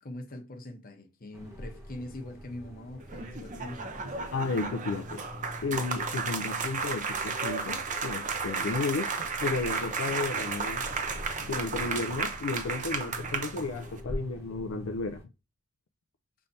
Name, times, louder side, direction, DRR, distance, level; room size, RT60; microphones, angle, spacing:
voice 1, 0.0-4.2, left 1 dB, 40° left, 0.9 m, -42 dB
sound 1, 1.3-15.2, equal, 10° right, 1.1 m, -44 dB
sound 2, 3.0-14.0, right 5 dB, 35° right, 0.7 m, -33 dB
voice 2, 4.3-5.2 5.6-9.1 9.4-10.8 11.4-15.2, left 3 dB, 65° left, 0.4 m, -33 dB
5.5 x 3.2 x 2.7 m
head